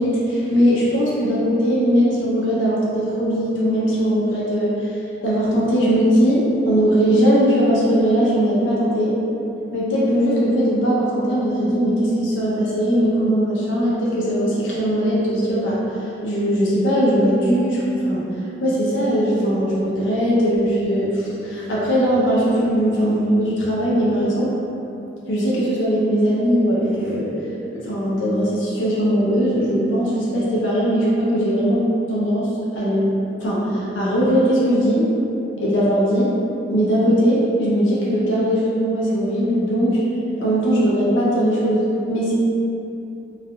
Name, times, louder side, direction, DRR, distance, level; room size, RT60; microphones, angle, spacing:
voice 1, 0.0-4.7 5.2-9.1 9.7-15.8 16.2-18.2 18.6-24.5 25.3-27.3 27.7-33.1 33.4-35.1 35.6-36.3 36.7-40.0 40.4-42.3, equal, 85° left, -7 dB, 0.6 m, -19 dB
3.3 x 2.3 x 2.3 m, 2.8 s
head